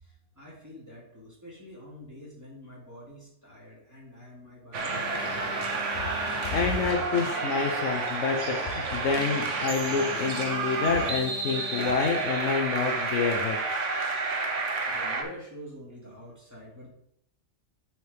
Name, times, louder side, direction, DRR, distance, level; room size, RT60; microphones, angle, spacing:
voice 1, 0.0-5.7 14.5-16.9, equal, 15° right, -5 dB, 2.7 m, -47 dB
sound 1, 4.7-15.2, right 3 dB, 80° right, 1.4 m, -30 dB
Alarm, 4.9-7.4 9.9-12.4, left 4 dB, 60° left, 0.8 m, -42 dB
voice 2, 6.5-13.6, left 5 dB, 85° left, 1 dB, 1.1 m, -28 dB
9.3 x 4.8 x 3.4 m, 0.72 s
omnidirectional pair, 1.2 m